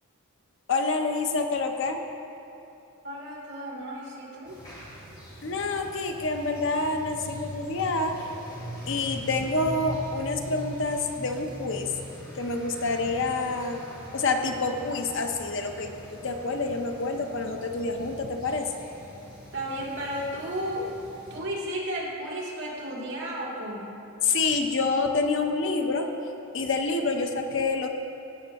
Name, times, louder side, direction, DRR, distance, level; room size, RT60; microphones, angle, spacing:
voice 1, 0.7-2.0 5.4-8.3 8.9-11.9 12.3-13.8 14.1-18.7 24.2-26.1 26.5-27.9, left 3 dB, 55° left, 4 dB, 0.7 m, -27 dB
voice 2, 3.0-4.6 19.5-21.0 21.3-24.0, equal, 55° right, -5 dB, 2.0 m, -33 dB
sound 1, 4.4-21.4, equal, 20° left, 2.1 m, -42 dB
16.5 x 7.2 x 2.9 m, 2.9 s
head